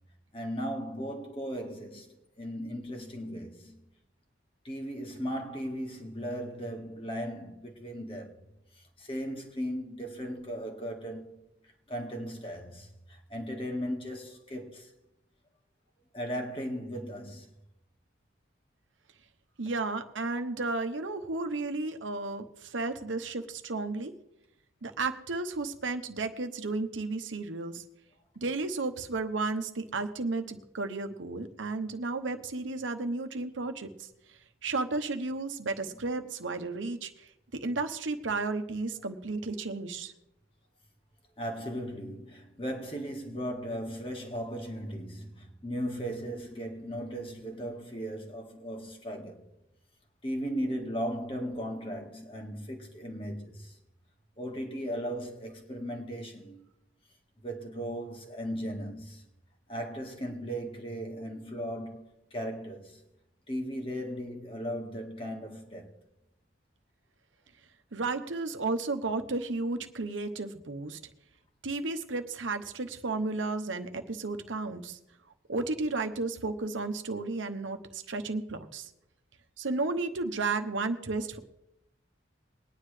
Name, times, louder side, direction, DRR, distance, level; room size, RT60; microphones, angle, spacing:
voice 1, 0.3-3.8 4.6-8.4 9.0-11.4 11.9-14.9 16.1-17.5 35.9-36.0 41.4-49.4 50.2-53.8 54.4-56.7 57.4-59.2 59.7-62.0 62.3-63.0 63.5-65.9, equal, 30° left, 1.6 m, -37 dB
voice 2, 19.6-24.1 24.8-27.8 28.4-34.1 34.6-40.1 67.9-71.0 71.6-75.0 75.5-78.9 79.6-81.4, right 3 dB, 85° right, 1.0 m, -33 dB
21.5 x 9.7 x 3.3 m
head